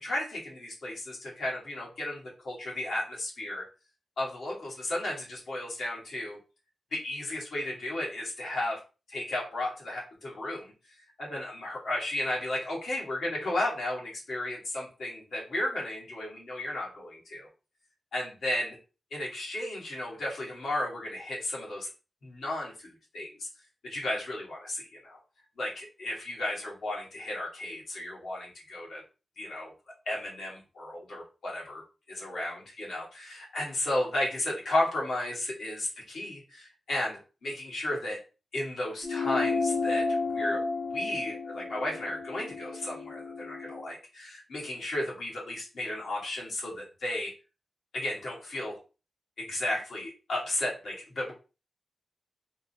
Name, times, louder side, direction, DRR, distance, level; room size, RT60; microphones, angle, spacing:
voice 1, 0.0-3.6 4.2-6.4 6.9-8.8 9.1-10.7 11.2-17.5 18.1-18.8 19.1-21.9 22.2-23.5 23.8-25.2 25.6-29.0 29.4-29.7 30.0-31.8 32.1-38.2 38.5-40.6 40.9-47.3 47.9-48.8 49.4-51.3, left 1 dB, 75° left, -4 dB, 1.5 m, -34 dB
sound 1, 39.0-43.9, left 3 dB, 30° left, 0.5 m, -32 dB
3.6 x 2.0 x 2.7 m, 0.32 s
wide cardioid pair, 180°, 0 cm